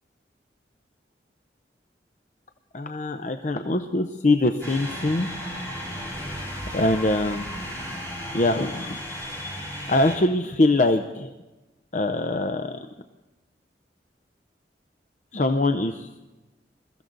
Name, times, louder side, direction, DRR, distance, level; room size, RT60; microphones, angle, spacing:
voice 1, 2.7-5.3 6.7-7.5 8.3-9.0 9.6-11.3 11.9-12.8 15.3-16.1, left 2 dB, 45° left, 6 dB, 0.7 m, -23 dB
sound 1, 4.6-10.2, equal, 15° left, 4.4 m, -34 dB
22.5 x 14.0 x 4.0 m, 1.1 s
head